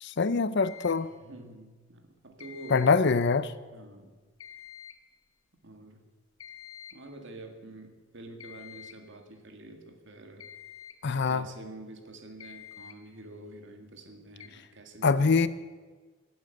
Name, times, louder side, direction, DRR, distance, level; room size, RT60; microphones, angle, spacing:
voice 1, 0.0-1.1 2.7-3.5 11.0-11.5 15.0-15.5, left 4 dB, 55° left, 15 dB, 0.6 m, -24 dB
sound 1, 0.6-1.1 2.4-3.1 4.4-5.1 6.4-7.1 8.4-9.1 10.4-11.1 12.4-13.1 14.4-14.5, left 9 dB, 85° left, 1.2 m, -48 dB
voice 2, 1.0-2.9 3.7-4.1 5.6-6.1 6.9-10.4 11.3-15.5, right 2 dB, 60° right, 5 dB, 2.0 m, -47 dB
17.5 x 8.7 x 7.8 m, 1.4 s
head